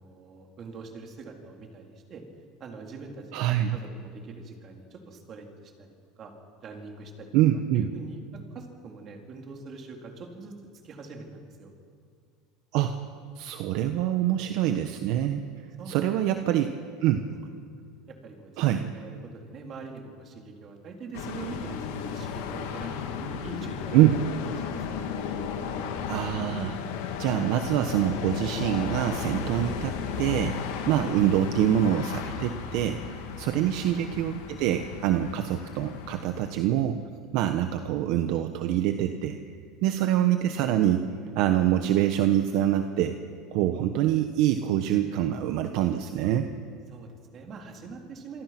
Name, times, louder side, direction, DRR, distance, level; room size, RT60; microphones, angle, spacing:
voice 1, 0.0-2.2 2.6-5.9 6.2-7.3 7.7-10.5 10.8-11.7 15.8-16.5 17.3-17.5 18.1-24.1 24.6-24.8 33.5-33.9 46.9-48.4, right 4 dB, 35° right, 2 dB, 4.0 m, -43 dB
voice 2, 3.3-3.8 7.3-7.8 12.7-12.9 13.4-15.4 15.9-16.7 17.0-17.3 18.6-18.8 23.9-24.1 26.1-26.8 27.2-30.6 30.9-37.0 37.3-39.4 39.8-41.0 41.3-43.2 43.5-46.5, right 12 dB, 60° right, 7 dB, 1.2 m, -25 dB
sound 1, 21.1-36.6, left 6 dB, 85° left, 3.1 m, -34 dB
27.0 x 24.5 x 6.1 m, 2.1 s
supercardioid pair, 140°, 0 cm